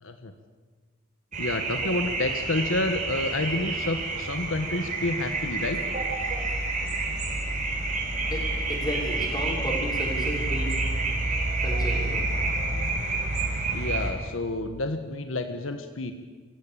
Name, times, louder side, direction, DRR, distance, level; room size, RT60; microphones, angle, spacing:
voice 1, 0.0-0.3 1.4-5.8 13.7-16.1, left 2 dB, 80° left, 7 dB, 1.5 m, -29 dB
sound 1, 1.3-14.1, right 2 dB, 40° right, 4.9 m, -28 dB
voice 2, 8.3-10.8 11.6-12.2, equal, 20° left, -2 dB, 6.4 m, -33 dB
25.5 x 16.0 x 8.9 m, 1.5 s
head